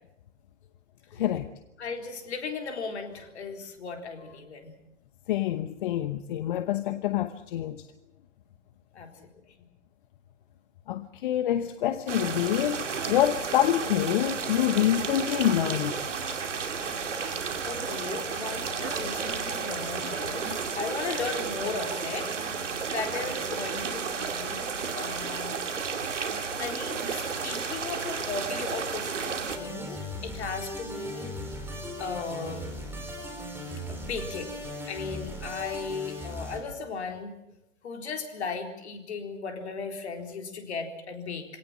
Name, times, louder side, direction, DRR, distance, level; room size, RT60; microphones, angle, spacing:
voice 1, 1.2-1.5 5.3-7.9 10.9-16.1, left 12 dB, 40° left, 12 dB, 1.0 m, -26 dB
voice 2, 1.8-4.7 8.9-9.1 9.6-9.7 17.6-22.3 22.9-25.6 26.6-31.3 31.8-32.9 33.9-37.3 37.8-41.5, left 5 dB, 60° left, 5 dB, 4.1 m, -36 dB
sound 1, 12.1-29.6, right 5 dB, 70° right, 2.6 m, -32 dB
sound 2, 29.5-36.6, equal, 5° right, 5.0 m, -38 dB
25.5 x 17.5 x 7.4 m, 0.87 s
figure-of-eight pair, 120°, 37 cm